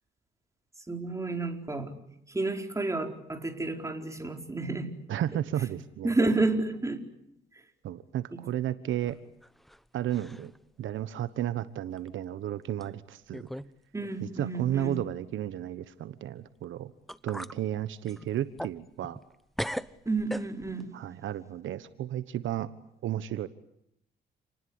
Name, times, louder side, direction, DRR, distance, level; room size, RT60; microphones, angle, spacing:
voice 1, 0.9-1.9 2.3-4.9 6.0-7.0 8.3-8.4 13.9-15.0 20.1-20.9, right 2 dB, 15° right, 5 dB, 4.6 m, -30 dB
voice 2, 5.1-6.1 7.8-9.2 9.9-10.5 10.8-13.5 14.2-16.9 17.2-19.2 20.9-22.7 23.0-23.5, right 11 dB, 75° right, 13 dB, 1.3 m, -33 dB
sound 1, 8.9-9.8 10.1-10.6 11.0-11.1 12.0-12.1 12.8-12.9 13.3-13.7 14.0-14.1 16.6-16.7 17.1-17.6 18.0-19.3 19.6-20.9, equal, ahead, 1.0 m, -39 dB
29.0 x 20.0 x 9.7 m, 0.75 s
cardioid pair, 90°, 20 cm